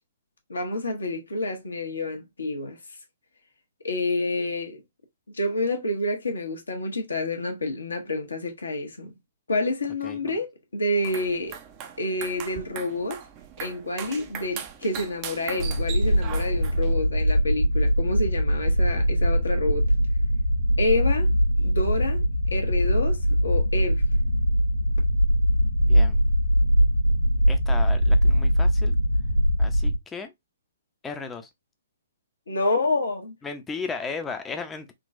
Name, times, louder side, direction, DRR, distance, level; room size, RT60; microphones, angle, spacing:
voice 1, 0.5-2.8 3.8-4.8 5.3-9.1 9.5-11.5 12.0-13.2 13.6-19.8 20.8-21.3 21.6-22.2 22.5-24.0 32.5-33.3, left 2 dB, 75° left, 1.1 m, -28 dB
voice 2, 10.0-10.4 25.8-26.2 27.5-29.0 29.6-30.3 31.0-31.5 33.4-34.9, left 4 dB, 15° left, 0.6 m, -35 dB
sound 1, 10.9-16.9, right 8 dB, 30° right, 0.5 m, -39 dB
sound 2, 15.6-30.0, equal, 85° right, 1.1 m, -22 dB
3.7 x 2.3 x 2.5 m
figure-of-eight pair, 125°, 0 cm